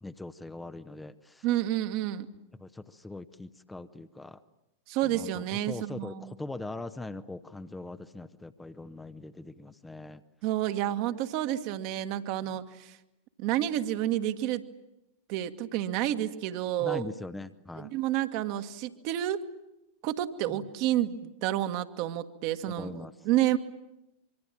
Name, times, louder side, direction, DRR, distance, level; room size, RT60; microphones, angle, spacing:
voice 1, 0.0-1.4 2.6-4.4 5.0-10.2 16.8-17.9 20.5-20.6 22.8-23.1, left 2 dB, 10° left, 10 dB, 1.0 m, -41 dB
voice 2, 1.4-2.3 4.9-6.3 10.4-13.0 13.4-14.7 15.3-17.0 17.8-19.4 20.0-23.6, right 13 dB, 45° right, 8 dB, 1.6 m, -30 dB
25.5 x 24.5 x 9.0 m, 0.92 s
figure-of-eight pair, 90°, 0 cm